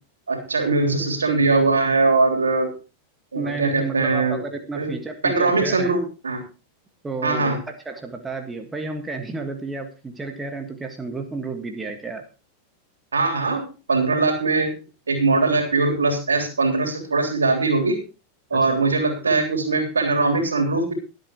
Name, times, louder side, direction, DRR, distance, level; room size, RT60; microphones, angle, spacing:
voice 1, 0.3-2.7 3.3-4.4 4.8-4.9 5.2-6.4 7.2-7.6 13.1-14.7 15.1-18.1 18.5-20.9, right 3 dB, 75° right, 3 dB, 3.4 m, -21 dB
voice 2, 3.3-5.9 7.0-12.2 18.5-18.8, right 3 dB, 10° right, 5 dB, 1.7 m, -32 dB
22.5 x 8.3 x 3.0 m, 0.33 s
figure-of-eight pair, 90°, 0 cm